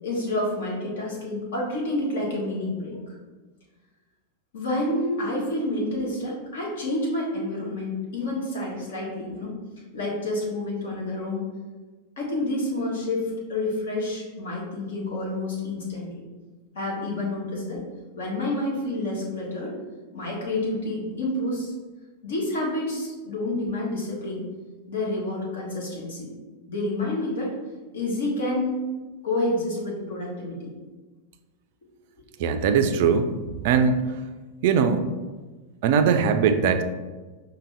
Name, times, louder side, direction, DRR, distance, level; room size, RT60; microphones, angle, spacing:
voice 1, 0.0-3.1 4.5-9.5 9.9-11.4 12.2-16.3 16.7-17.8 18.1-19.7 20.1-21.7 22.2-24.4 24.9-26.3 26.7-27.6 27.9-28.8 29.2-30.7, left 1 dB, 60° left, -3 dB, 1.3 m, -29 dB
voice 2, 32.4-33.3 33.6-34.2 34.6-35.0 35.8-36.8, right 6 dB, 50° right, 8 dB, 0.3 m, -20 dB
5.1 x 2.2 x 3.2 m, 1.3 s
figure-of-eight pair, 90°, 0 cm